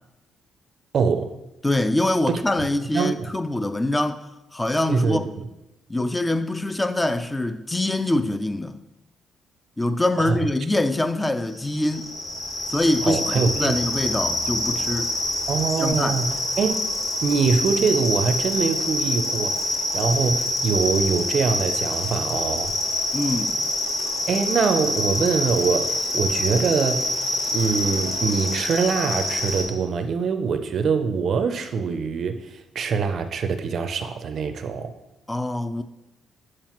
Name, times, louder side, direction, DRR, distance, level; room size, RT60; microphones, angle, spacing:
voice 1, 0.9-1.3 2.9-3.3 4.9-5.3 10.2-10.4 13.0-13.8 15.5-16.7 17.2-22.7 24.3-27.1 27.5-34.9, right 5 dB, 60° right, 0.5 m, -24 dB
voice 2, 1.6-5.3 5.9-8.8 9.8-12.1 12.7-15.1 15.8-16.2 23.1-23.6 35.3-35.8, left 1 dB, 15° left, 0.4 m, -24 dB
sound 1, 11.5-29.6, left 1 dB, 50° left, 1.5 m, -26 dB
7.3 x 4.8 x 3.0 m
cardioid pair, 90°, 0 cm